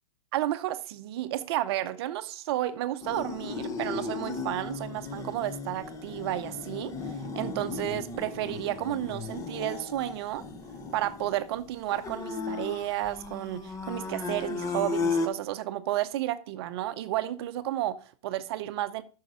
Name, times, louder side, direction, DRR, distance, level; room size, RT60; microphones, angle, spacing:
voice 1, 0.3-10.4 10.9-19.0, right 14 dB, 45° right, 0.7 m, -32 dB
sound 1, 3.0-15.3, left 4 dB, 15° left, 0.9 m, -35 dB
9.1 x 6.5 x 4.8 m
hypercardioid pair, 145°, 18 cm